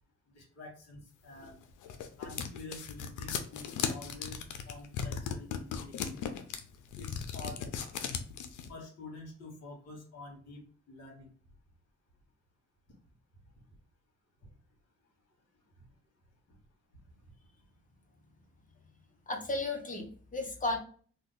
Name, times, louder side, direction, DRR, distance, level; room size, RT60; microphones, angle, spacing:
voice 1, 0.3-1.6 2.2-6.2 7.0-7.7 8.7-11.3 14.4-14.5 15.8-15.9, left 2 dB, 55° left, 1 dB, 1.6 m, -48 dB
sound 1, 1.4-8.7, left 7 dB, 80° left, 0.6 m, -37 dB
voice 2, 19.3-20.8, left 2 dB, 25° left, 3 dB, 1.0 m, -34 dB
2.9 x 2.4 x 3.6 m, 0.43 s
cardioid pair, 90°, 30 cm